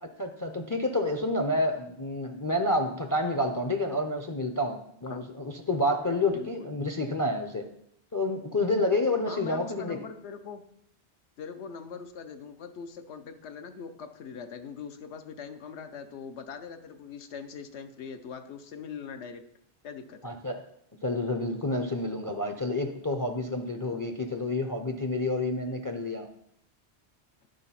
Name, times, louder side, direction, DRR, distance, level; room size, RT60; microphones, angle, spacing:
voice 1, 0.0-7.7 8.1-10.0 20.2-20.6 21.0-26.3, left 2 dB, 25° left, 4 dB, 0.4 m, -29 dB
voice 2, 6.3-6.7 9.3-10.6 11.4-19.4 19.8-20.4, left 6 dB, 80° left, 8 dB, 1.0 m, -42 dB
9.5 x 3.9 x 5.7 m, 0.72 s
omnidirectional pair, 1.1 m